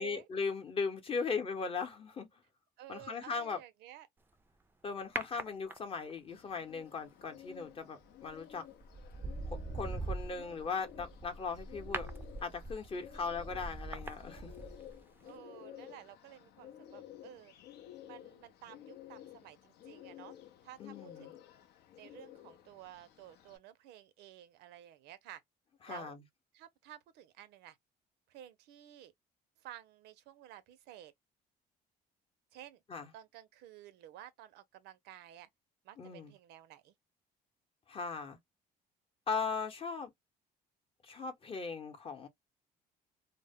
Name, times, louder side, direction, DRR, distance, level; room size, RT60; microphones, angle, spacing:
voice 1, 0.0-2.3 2.9-3.6 4.8-8.6 9.7-12.1 12.4-14.5 20.8-21.3 25.8-26.2 32.9-33.1 36.0-36.3 37.9-38.4 39.3-40.1 41.0-42.3, left 5 dB, 35° left, 0.7 m, -38 dB
voice 2, 2.8-4.1 13.1-13.5 15.2-17.5 18.1-20.4 20.6-21.4 22.0-25.4 25.9-26.2 26.5-27.8 28.3-29.1 29.6-31.1 32.5-32.8 33.1-35.5 35.8-36.9, right 12 dB, 85° right, 0.5 m, -53 dB
sound 1, 5.2-6.2 8.1-8.3 8.8-15.0 15.3-15.4, right 2 dB, 10° right, 0.4 m, -42 dB
Bird, 6.3-23.6, left 11 dB, 75° left, 0.5 m, -54 dB
2.0 x 2.0 x 3.4 m
cardioid pair, 110°, 17 cm